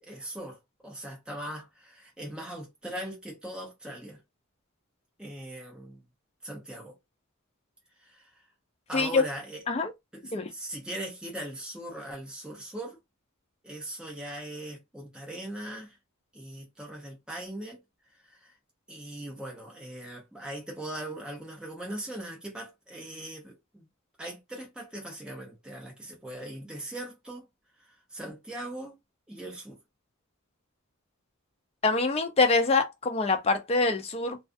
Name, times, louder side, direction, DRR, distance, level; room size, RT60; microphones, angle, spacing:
voice 1, 0.0-4.2 5.2-6.0 6.4-7.0 8.0-8.4 8.9-9.6 10.1-13.0 13.6-16.0 16.3-17.8 18.0-18.6 18.9-23.9 24.2-27.5 27.8-29.0 29.3-29.8, right 1 dB, 5° right, 0.7 m, -40 dB
voice 2, 31.8-34.4, left 3 dB, 30° left, 0.4 m, -25 dB
2.3 x 2.3 x 2.5 m
head